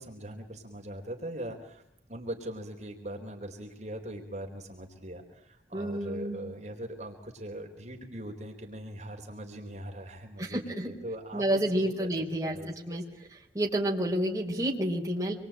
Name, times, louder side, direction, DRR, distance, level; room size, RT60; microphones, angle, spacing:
voice 1, 0.0-1.8 2.1-12.1 12.4-13.0, right 1 dB, 40° right, 1 dB, 4.0 m, -41 dB
voice 2, 5.7-6.4 10.4-10.9 11.3-12.6 12.9-13.0 13.5-15.3, right 1 dB, 15° right, -2 dB, 4.8 m, -29 dB
27.0 x 23.5 x 8.9 m, 0.73 s
head